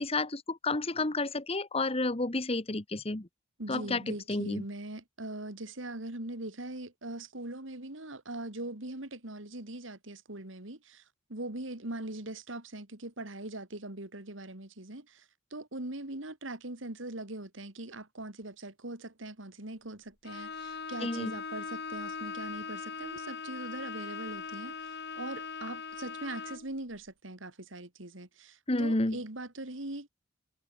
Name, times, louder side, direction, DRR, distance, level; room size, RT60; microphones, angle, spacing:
voice 1, 0.0-3.3 3.7-4.6 21.0-21.3 28.7-29.2, left 2 dB, 30° left, 1.3 m, -31 dB
voice 2, 3.6-11.0 11.3-15.2 15.5-30.1, right 2 dB, 70° right, 2.9 m, -41 dB
Bowed string instrument, 20.2-26.7, left 5 dB, 55° left, 2.2 m, -40 dB
head